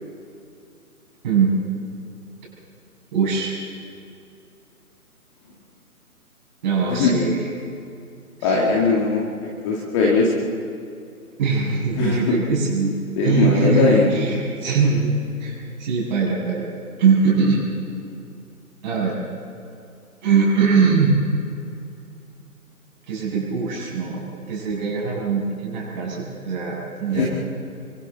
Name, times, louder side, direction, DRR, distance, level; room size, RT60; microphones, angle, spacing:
voice 1, 3.1-3.5 6.6-7.5 8.4-8.5 11.4-12.9 13.2-15.1 15.4-16.7 17.0-17.7 18.8-19.2 20.2-21.1 23.1-27.3, right 5 dB, 30° right, -3 dB, 7.4 m, -21 dB
voice 2, 8.4-10.3 12.0-12.3 13.2-14.1 27.1-27.3, left 4 dB, 20° left, -3 dB, 2.1 m, -19 dB
29.5 x 24.0 x 4.1 m, 2.6 s
figure-of-eight pair, 145°, 45 cm